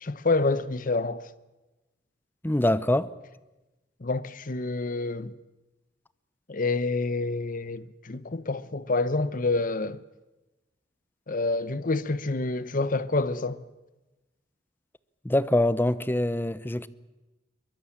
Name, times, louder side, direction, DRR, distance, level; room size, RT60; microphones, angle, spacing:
voice 1, 0.0-1.3 4.0-5.3 6.5-10.0 11.3-13.6, left 3 dB, 50° left, 1.0 m, -28 dB
voice 2, 2.4-3.1 15.2-16.9, left 1 dB, 10° left, 0.7 m, -24 dB
22.5 x 22.0 x 8.8 m
head